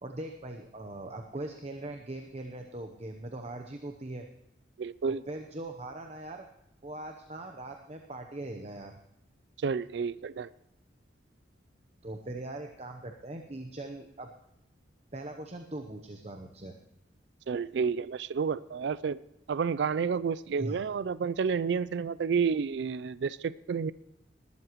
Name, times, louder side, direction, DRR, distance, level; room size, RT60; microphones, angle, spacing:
voice 1, 0.0-4.3 5.1-6.5 6.8-8.9 12.0-14.3 15.1-16.8 20.6-20.8, right 2 dB, 35° right, 4 dB, 0.8 m, -40 dB
voice 2, 4.8-5.2 9.6-10.5 17.5-19.2 19.5-23.9, right 6 dB, 60° right, 17 dB, 0.4 m, -30 dB
19.5 x 12.5 x 3.1 m, 0.89 s
head